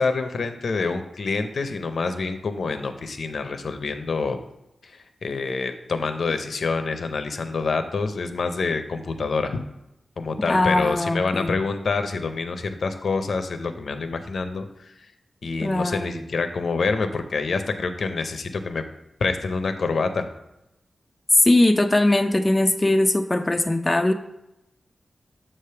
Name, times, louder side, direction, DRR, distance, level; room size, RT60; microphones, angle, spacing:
voice 1, 0.0-4.4 4.8-9.6 10.2-14.6 15.4-18.8 19.2-20.2, left 4 dB, 70° left, 8 dB, 0.6 m, -26 dB
voice 2, 10.5-11.6 15.6-16.2 21.4-24.1, left 1 dB, 20° left, 6 dB, 0.3 m, -20 dB
7.3 x 3.3 x 5.6 m, 0.87 s
wide cardioid pair, 125°, 0 cm